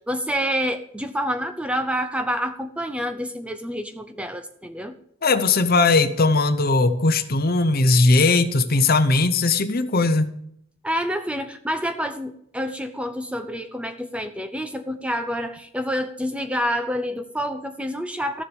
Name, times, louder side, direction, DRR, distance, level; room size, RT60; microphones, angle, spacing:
voice 1, 0.1-5.0 10.8-18.4, equal, 5° right, 9 dB, 0.6 m, -28 dB
voice 2, 5.2-10.3, left 3 dB, 40° left, 11 dB, 0.9 m, -19 dB
14.0 x 7.5 x 7.1 m, 0.71 s
head